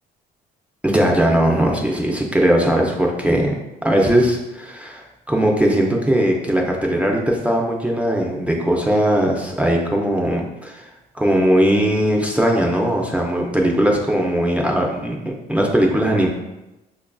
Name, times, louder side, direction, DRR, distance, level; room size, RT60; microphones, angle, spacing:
voice 1, 0.8-3.5 3.8-10.8 11.2-15.2 15.5-16.3, right 1 dB, 10° right, 0 dB, 0.4 m, -19 dB
5.1 x 2.5 x 2.3 m, 0.99 s
cardioid pair, 110°, 17 cm